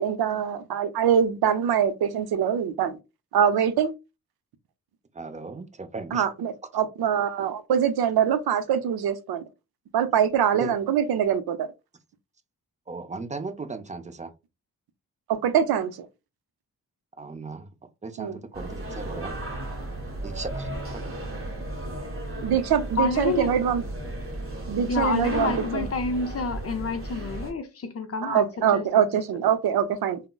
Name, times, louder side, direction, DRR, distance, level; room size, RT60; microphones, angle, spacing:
voice 1, 0.0-3.0 3.3-3.9 6.1-9.4 9.9-11.7 15.3-15.9 18.2-18.4 22.4-23.8 24.7-25.9 28.2-30.2, right 8 dB, 75° right, 0.5 m, -24 dB
voice 2, 5.1-6.2 10.6-10.7 12.9-14.3 17.2-17.7 18.0-19.3 20.2-20.7 21.0-21.1, right 3 dB, 20° right, 0.4 m, -36 dB
sound 1, 18.5-27.5, right 1 dB, 35° right, 1.1 m, -34 dB
voice 3, 23.0-23.5 24.9-28.4 28.7-28.9, left 4 dB, 40° left, 0.5 m, -28 dB
3.5 x 2.0 x 2.2 m
cardioid pair, 80°, 38 cm